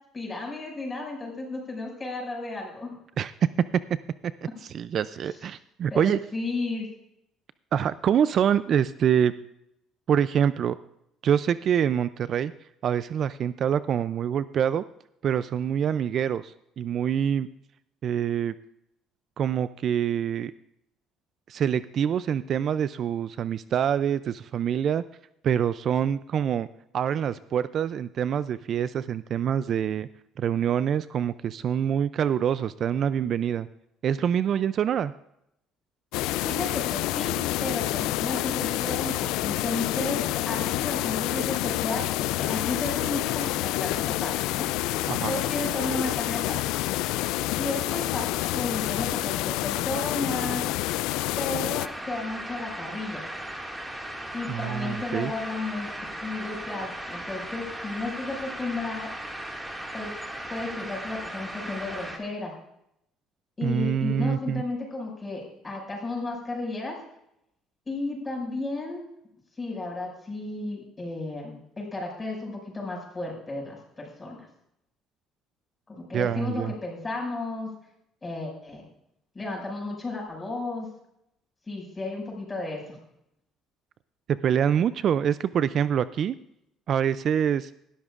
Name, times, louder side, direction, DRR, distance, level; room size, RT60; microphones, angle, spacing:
voice 1, 0.1-2.9 5.9-6.9 36.4-44.7 45.3-46.6 47.6-50.7 51.4-53.2 54.3-55.9 56.2-59.1 59.9-60.1 60.5-62.6 63.6-67.0 67.9-69.1 69.6-74.4 75.9-77.7 78.2-78.8 79.3-80.9 81.7-83.0, left 2 dB, 20° left, -1 dB, 5.9 m, -33 dB
voice 2, 4.6-6.2 7.7-9.3 10.1-10.8 11.2-12.5 12.8-14.8 15.2-17.5 18.0-18.5 19.4-20.5 21.5-25.0 25.4-26.7 26.9-30.1 30.4-33.7 34.0-35.1 45.1-45.3 54.5-55.3 63.6-64.6 76.1-76.7 84.3-86.4 86.9-87.7, right 8 dB, 50° right, 15 dB, 0.3 m, -25 dB
sound 1, 36.1-51.9, left 16 dB, 90° left, 0.3 m, -28 dB
sound 2, 51.8-62.2, right 1 dB, 10° right, 2.0 m, -37 dB
19.0 x 12.5 x 2.5 m, 0.78 s
cardioid pair, 115°, 0 cm